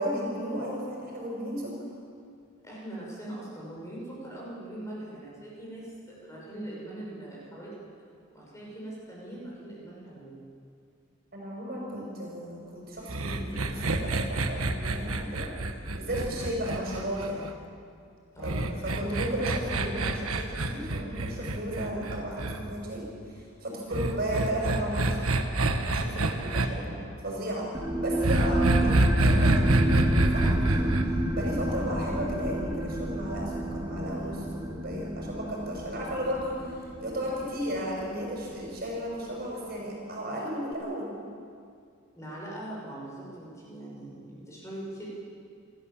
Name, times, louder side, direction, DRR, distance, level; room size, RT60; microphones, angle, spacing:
voice 1, 0.0-1.7 11.3-15.5 15.9-17.4 18.4-27.0 27.2-27.7 28.0-30.9 31.3-41.1, equal, 45° right, -2 dB, 5.9 m, -34 dB
voice 2, 2.6-7.8 8.3-10.5 16.2-16.5 18.3-18.5 26.2-27.0 42.2-45.1, right 1 dB, 15° left, -5 dB, 6.1 m, -41 dB
sound 1, 13.1-17.5 18.4-22.6 23.9-26.7 28.2-31.0, right 2 dB, 85° right, 1.5 m, -27 dB
sound 2, 18.4-23.4, left 2 dB, 90° left, 2.3 m, -46 dB
sound 3, 27.7-38.9, right 1 dB, 15° right, 1.3 m, -30 dB
28.5 x 14.0 x 7.3 m, 2.3 s
head